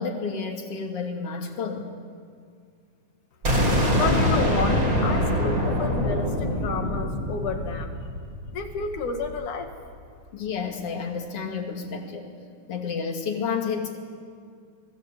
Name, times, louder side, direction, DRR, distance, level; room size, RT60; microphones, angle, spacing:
voice 1, 0.0-1.9 10.3-12.4 12.7-14.0, left 5 dB, 50° left, 3 dB, 3.2 m, -30 dB
sound 1, 3.4-9.2, equal, 35° right, 6.3 m, -24 dB
voice 2, 3.9-8.0 8.5-9.7, left 5 dB, 75° left, 5 dB, 3.4 m, -31 dB
28.5 x 20.0 x 8.3 m, 2.2 s
omnidirectional pair, 3.6 m